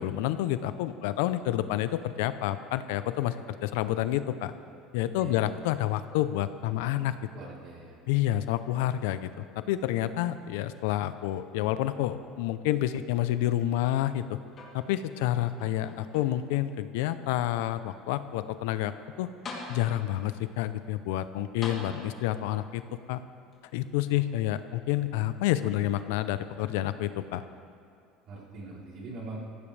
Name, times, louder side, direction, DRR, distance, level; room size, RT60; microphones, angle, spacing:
voice 1, 0.0-3.3 3.6-4.5 4.9-7.1 8.1-14.4 14.7-18.9 19.2-19.3 19.7-22.8 23.1-23.2 23.7-27.4, left 13 dB, 85° left, 12 dB, 0.6 m, -29 dB
voice 2, 7.3-8.0 21.9-22.0 22.5-22.6 24.1-24.2 28.3-29.4, right 2 dB, 50° right, -4 dB, 3.7 m, -43 dB
sound 1, 14.5-15.2 15.6-16.6 17.3-17.4 19.0-19.1 19.4-20.2 21.6-22.5 23.5-23.6, left 3 dB, 30° left, 2.9 m, -43 dB
19.5 x 15.5 x 3.4 m, 2.4 s
cardioid pair, 140°, 0 cm